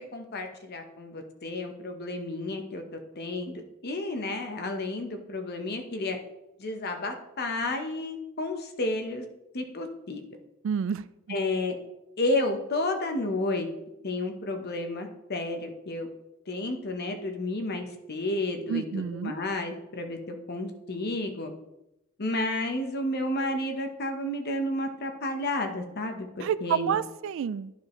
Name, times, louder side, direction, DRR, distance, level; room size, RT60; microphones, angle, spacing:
voice 1, 0.0-2.8 3.1-6.2 6.6-9.3 9.5-10.2 11.3-11.7 12.2-13.7 14.0-16.1 16.5-21.5 22.2-26.9, left 2 dB, 50° left, 5 dB, 0.9 m, -31 dB
voice 2, 10.6-11.4 18.7-19.3 26.4-27.7, right 8 dB, 65° right, 18 dB, 0.3 m, -29 dB
11.0 x 4.8 x 3.1 m, 0.90 s
head